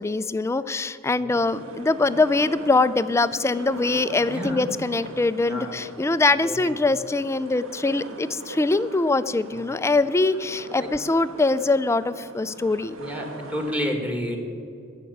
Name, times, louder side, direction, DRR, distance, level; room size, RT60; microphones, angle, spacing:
voice 1, 0.0-13.0, left 3 dB, 15° left, 15 dB, 0.3 m, -23 dB
sound 1, 1.4-13.8, right 2 dB, 90° right, 1.3 m, -41 dB
voice 2, 4.2-4.6 5.1-5.2 5.5-5.7 6.4-6.6 10.5-10.9 13.0-13.2 13.5-14.4, left 1 dB, 5° right, 3 dB, 1.7 m, -30 dB
14.0 x 5.8 x 9.5 m, 2.4 s
head